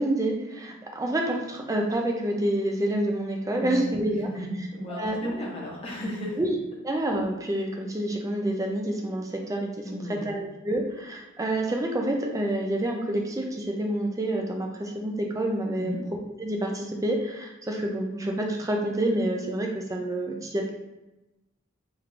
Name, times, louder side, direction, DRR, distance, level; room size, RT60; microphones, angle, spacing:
voice 1, 0.0-4.3 4.9-5.3 6.4-6.5 6.8-15.9 16.4-20.7, right 1 dB, 15° right, 1 dB, 0.3 m, -28 dB
voice 2, 3.6-6.5 9.8-10.4 15.8-16.0, equal, 25° left, -4 dB, 0.7 m, -35 dB
3.3 x 3.1 x 2.4 m, 1.0 s
head